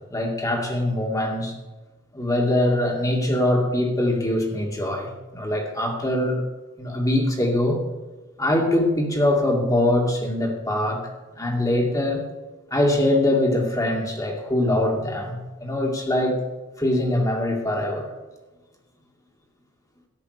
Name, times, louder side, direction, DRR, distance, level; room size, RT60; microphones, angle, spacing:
voice 1, 0.0-1.5 2.1-6.4 6.8-7.8 8.4-11.0 11.4-12.2 12.7-16.4 16.8-18.1, left 1 dB, 15° left, 1 dB, 2.4 m, -23 dB
13.5 x 10.0 x 6.7 m, 1.2 s
head